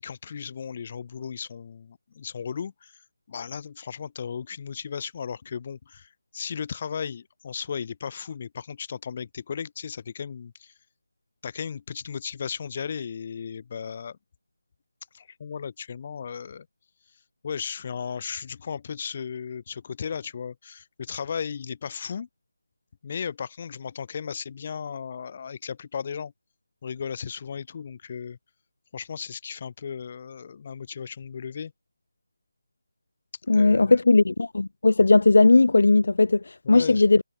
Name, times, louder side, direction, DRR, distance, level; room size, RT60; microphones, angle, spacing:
voice 1, 0.0-3.0 3.3-10.7 11.4-14.2 15.1-16.7 17.4-22.3 23.0-26.3 26.8-28.4 28.9-31.7 33.5-34.0 36.6-37.0, left 7 dB, 35° left, 5.1 m, -35 dB
voice 2, 33.5-37.2, left 3 dB, 70° left, 0.4 m, -18 dB
figure-of-eight pair, 160°, 0 cm